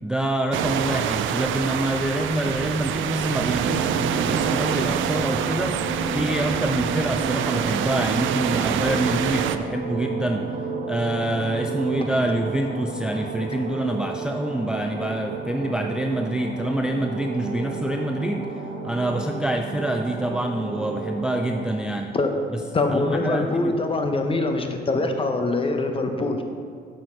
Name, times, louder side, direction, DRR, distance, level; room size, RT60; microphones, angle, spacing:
voice 1, 0.0-5.8 6.1-10.5 10.9-18.5 18.8-22.1 22.5-22.6 22.9-23.8, right 1 dB, 5° right, 3 dB, 0.3 m, -26 dB
sound 1, 0.5-9.6, right 9 dB, 75° right, 0.4 m, -26 dB
sound 2, 3.5-21.6, right 3 dB, 55° right, 1.4 m, -32 dB
voice 2, 22.7-26.4, left 2 dB, 25° left, 5 dB, 0.8 m, -23 dB
6.5 x 6.1 x 4.4 m, 2.2 s
cardioid pair, 90°, 20 cm